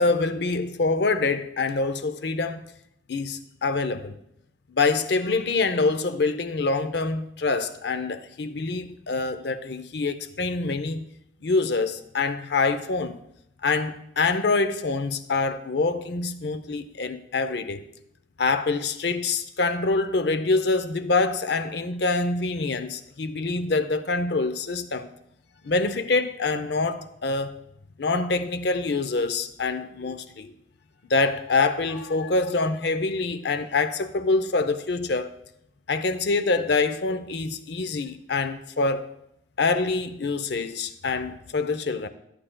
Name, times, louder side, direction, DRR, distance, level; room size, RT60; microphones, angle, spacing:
voice 1, 0.0-2.7 3.1-4.2 4.7-11.0 11.4-13.2 13.6-17.8 18.4-25.1 25.6-27.6 28.0-30.5 31.1-35.3 35.9-39.1 39.6-42.1, left 3 dB, 60° left, 0.6 m, -25 dB
13.5 x 8.7 x 2.2 m
head